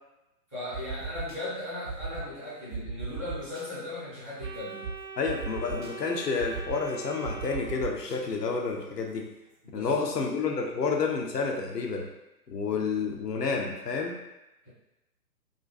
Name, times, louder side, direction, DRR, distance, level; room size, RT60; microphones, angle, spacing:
voice 1, 0.5-4.8 9.6-10.1 14.6-14.7, left 2 dB, 10° left, -13 dB, 0.6 m, -37 dB
sound 1, 0.7-1.4 1.9-2.2 2.7-3.6 4.4-4.5 4.8-4.9 5.2-5.9 6.4-6.8 7.2-8.2, right 5 dB, 35° right, 0.4 m, -36 dB
Organ, 4.4-8.4, right 5 dB, 90° right, 0.6 m, -43 dB
voice 2, 5.2-9.3 9.7-12.1 12.5-14.2, left 4 dB, 80° left, 1 dB, 0.6 m, -30 dB
2.5 x 2.2 x 2.4 m, 0.94 s
figure-of-eight pair, 130°, 47 cm